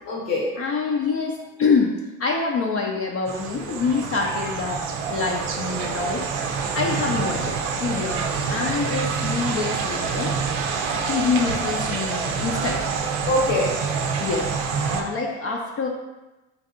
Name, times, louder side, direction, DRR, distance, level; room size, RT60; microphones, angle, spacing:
voice 1, 0.0-0.9 4.3-4.5 5.0-5.2 5.7-6.0 13.2-14.0, left 1 dB, 80° left, -4 dB, 1.0 m, -26 dB
voice 2, 0.6-6.3 6.7-10.4 10.9-12.9 14.2-15.9, left 4 dB, 40° left, -1 dB, 0.5 m, -26 dB
sound 1, 3.3-15.0, right 5 dB, 70° right, 0.5 m, -27 dB
4.5 x 2.6 x 2.5 m, 1.1 s
hypercardioid pair, 70°, 36 cm